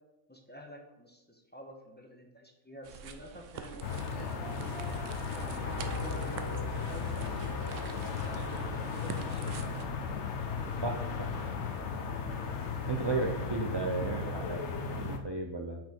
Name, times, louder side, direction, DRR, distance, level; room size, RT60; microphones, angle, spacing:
voice 1, 0.3-4.5 5.3-9.4, equal, 10° left, 1 dB, 1.0 m, -49 dB
sound 1, 2.8-9.9, right 7 dB, 65° right, 0.9 m, -46 dB
sound 2, 3.5-8.6, right 1 dB, 15° right, 1.1 m, -47 dB
sound 3, 3.8-15.2, left 5 dB, 55° left, 1.1 m, -35 dB
voice 2, 10.8-11.3 12.9-15.8, right 3 dB, 35° right, 0 dB, 0.4 m, -34 dB
8.1 x 5.9 x 4.5 m, 0.90 s
omnidirectional pair, 1.5 m